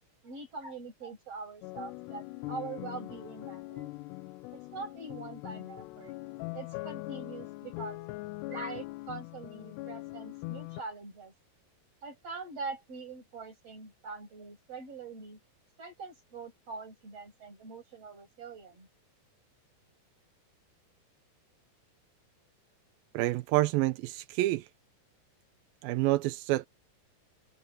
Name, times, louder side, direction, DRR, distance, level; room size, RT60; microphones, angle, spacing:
voice 1, 0.2-3.9 4.5-6.2 6.5-8.0 8.5-11.3 12.0-15.4 15.8-18.9, right 4 dB, 35° right, 7.0 m, -43 dB
sound 1, 1.6-10.8, left 21 dB, 85° left, 2.8 m, -41 dB
voice 2, 23.1-24.7 25.8-26.7, right 17 dB, 80° right, 2.2 m, -28 dB
omnidirectional pair, 4.8 m